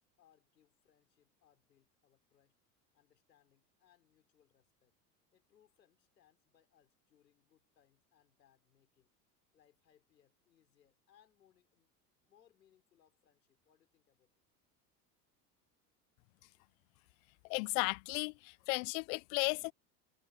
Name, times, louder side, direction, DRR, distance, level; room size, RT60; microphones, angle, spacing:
voice 1, 0.0-2.6 2.9-5.0 5.3-9.2 9.5-11.9 12.2-14.3, left 10 dB, 85° left, 4.2 m, -71 dB
voice 2, 17.5-19.7, left 33 dB, 55° left, 0.6 m, -35 dB
hypercardioid pair, 80°, 48 cm